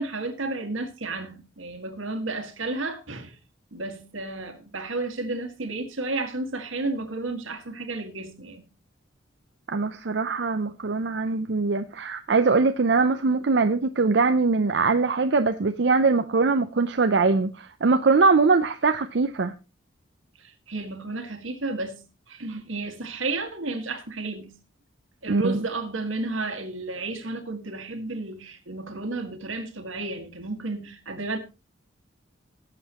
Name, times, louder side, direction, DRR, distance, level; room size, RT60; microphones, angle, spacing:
voice 1, 0.0-3.4 3.7-8.7 20.4-22.0 22.3-24.5 25.2-31.4, right 3 dB, 90° right, 1.9 m, -32 dB
voice 2, 9.7-19.5 25.3-25.6, right 4 dB, 60° right, 0.5 m, -22 dB
18.0 x 7.8 x 3.0 m
head